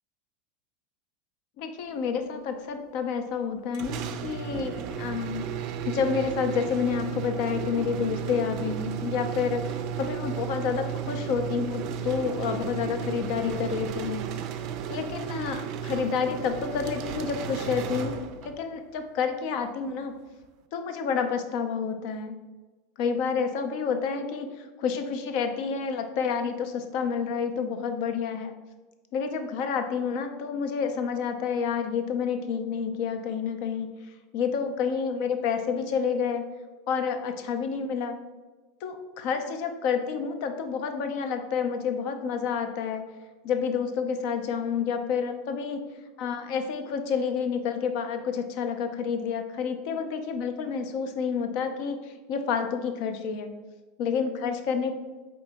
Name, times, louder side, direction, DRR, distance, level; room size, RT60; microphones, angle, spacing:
voice 1, 1.6-5.5 5.8-14.3 14.9-18.2 18.4-20.1 20.7-22.3 23.0-28.5 29.1-34.0 34.3-36.4 36.9-38.2 38.8-43.0 43.4-45.8 46.2-53.5 54.0-54.9, left 6 dB, 60° left, 7 dB, 0.5 m, -29 dB
sound 1, 3.7-18.7, right 8 dB, 55° right, 0.3 m, -34 dB
4.3 x 2.9 x 3.5 m, 1.2 s
hypercardioid pair, 105°, 0 cm